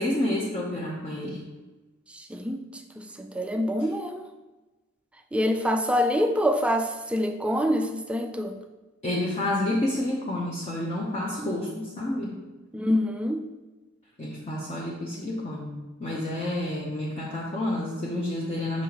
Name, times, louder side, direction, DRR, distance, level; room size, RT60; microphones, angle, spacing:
voice 1, 0.0-1.4 9.0-12.4 14.2-18.8, left 1 dB, 30° left, -4 dB, 0.7 m, -29 dB
voice 2, 2.1-4.3 5.3-8.6 11.4-11.9 12.7-13.5, equal, 5° right, 6 dB, 0.3 m, -26 dB
6.2 x 5.4 x 2.9 m, 1.2 s
head